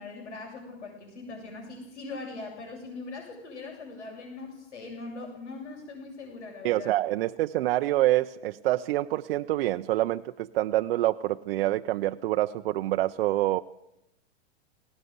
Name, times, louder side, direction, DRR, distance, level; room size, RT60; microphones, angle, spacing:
voice 1, 0.0-7.0, left 3 dB, 85° left, 7.5 m, -41 dB
voice 2, 6.6-13.6, right 15 dB, 55° right, 0.7 m, -26 dB
18.5 x 18.5 x 8.0 m
hypercardioid pair, 135°, 34 cm